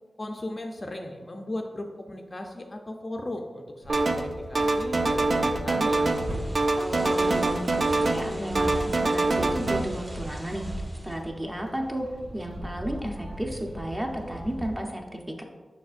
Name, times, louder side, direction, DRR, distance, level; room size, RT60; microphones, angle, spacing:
voice 1, 0.2-6.1, left 1 dB, 30° left, 3 dB, 0.5 m, -37 dB
sound 1, 3.8-14.8, right 1 dB, 80° right, 1.4 m, -38 dB
sound 2, 3.9-4.3 4.5-6.3 6.5-8.3 8.6-9.8, right 2 dB, 60° right, 0.4 m, -24 dB
sound 3, 6.0-11.2, equal, 35° right, 1.5 m, -45 dB
voice 2, 6.7-12.1 12.3-15.4, equal, 15° right, 2 dB, 0.7 m, -33 dB
7.0 x 5.7 x 2.5 m, 1.3 s
wide cardioid pair, 125°, 0 cm